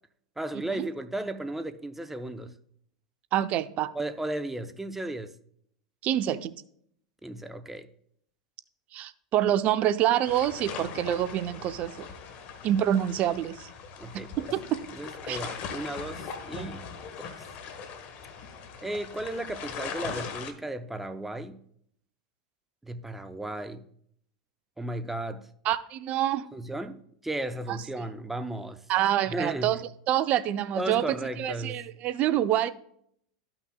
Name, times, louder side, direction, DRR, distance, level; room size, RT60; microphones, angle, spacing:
voice 1, 0.4-2.5 3.9-5.3 7.2-7.9 14.0-14.5 14.9-16.8 17.2-17.4 18.8-21.6 22.8-23.8 24.8-25.5 26.5-28.8 29.3-29.8 30.8-31.8, right 1 dB, 5° right, 0.6 m, -35 dB
voice 2, 3.3-3.9 6.0-6.5 8.9-11.9 12.6-13.7 14.1-14.8 15.3-15.4 16.6-16.7 25.6-26.5 27.7-27.8 28.9-29.8 30.1-31.0 31.4-32.7, right 11 dB, 45° right, 0.6 m, -26 dB
sound 1, 10.3-20.5, left 6 dB, 50° left, 1.1 m, -40 dB
13.0 x 5.9 x 2.3 m
hypercardioid pair, 100°, 3 cm